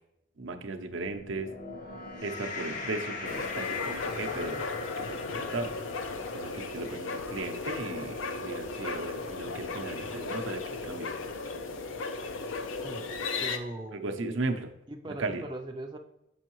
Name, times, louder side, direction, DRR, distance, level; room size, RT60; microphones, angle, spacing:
voice 1, 0.4-1.5 2.2-4.6 5.0-5.7 6.3-11.1 11.4-11.6 13.9-14.7 15.2-15.4, right 3 dB, 80° right, 5 dB, 0.6 m, -36 dB
sound 1, 1.0-7.5, left 4 dB, 40° left, 0.8 m, -40 dB
sound 2, 3.2-13.6, left 4 dB, 90° left, 0.6 m, -36 dB
voice 2, 13.4-14.0 14.9-16.0, right 1 dB, 25° right, 2 dB, 0.4 m, -39 dB
6.2 x 5.4 x 3.0 m, 0.83 s
head